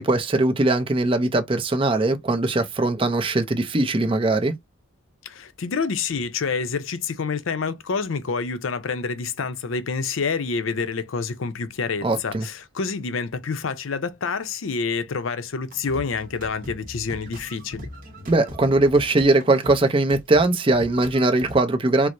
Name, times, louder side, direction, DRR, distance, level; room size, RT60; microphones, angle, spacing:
voice 1, 0.0-4.5 12.0-12.5 18.3-22.1, right 2 dB, 25° right, 0.5 m, -20 dB
voice 2, 5.2-17.9, left 5 dB, 75° left, 0.6 m, -28 dB
sound 1, 15.7-21.6, equal, 40° right, 1.0 m, -40 dB
4.5 x 2.0 x 2.5 m
head